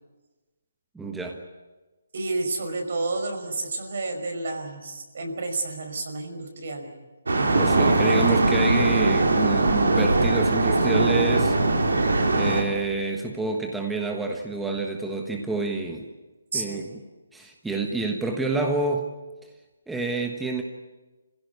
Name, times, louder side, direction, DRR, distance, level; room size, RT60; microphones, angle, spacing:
voice 1, 0.9-1.4 7.5-11.6 12.3-16.1 16.5-17.0 17.3-19.1 19.9-20.6, right 3 dB, 5° right, 2 dB, 1.3 m, -28 dB
voice 2, 2.1-6.9 7.4-8.2 16.5-16.8, right 3 dB, 60° right, 4 dB, 5.4 m, -31 dB
sound 1, 7.3-12.6, right 2 dB, 85° right, 4.3 m, -20 dB
26.5 x 16.0 x 9.6 m, 1.2 s
hypercardioid pair, 155°, 0 cm